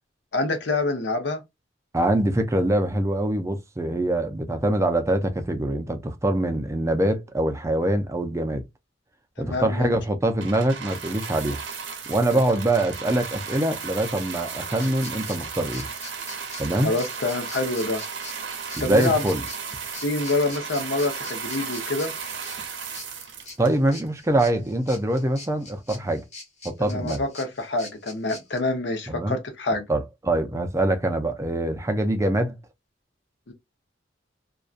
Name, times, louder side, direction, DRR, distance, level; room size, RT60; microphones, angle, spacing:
voice 1, 0.3-1.4 9.4-9.9 12.3-12.4 16.8-18.0 18.8-19.3 20.0-22.1 26.8-29.9 33.5-33.6, left 2 dB, 65° left, 0.7 m, -26 dB
voice 2, 1.9-8.6 9.4-11.6 12.1-15.9 16.6-16.9 18.8-19.4 23.6-26.2 26.6-27.2 29.1-29.4 29.9-32.6, right 1 dB, 15° right, 0.4 m, -24 dB
sound 1, 10.4-24.1 24.8-24.9, right 6 dB, 85° right, 0.8 m, -35 dB
sound 2, 14.8-28.6, left 2 dB, 40° left, 1.1 m, -43 dB
2.5 x 2.2 x 2.4 m
head